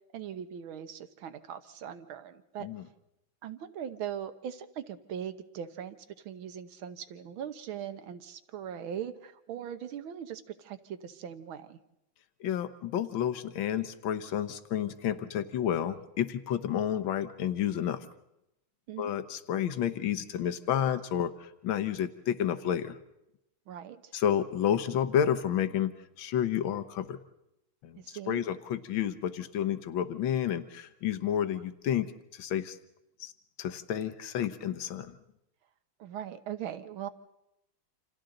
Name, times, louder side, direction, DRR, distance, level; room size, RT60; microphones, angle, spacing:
voice 1, 0.1-2.7 3.4-11.8 18.9-19.1 23.7-24.1 28.0-28.4 36.0-37.1, right 9 dB, 80° right, 10 dB, 1.9 m, -40 dB
voice 2, 12.4-18.1 19.0-21.3 21.6-23.0 24.1-25.9 26.2-27.2 27.8-28.0 28.3-32.1 32.4-32.8 33.2-33.3 33.6-35.1, left 9 dB, 75° left, 11 dB, 1.7 m, -30 dB
28.5 x 27.0 x 3.9 m, 0.87 s
omnidirectional pair, 2.2 m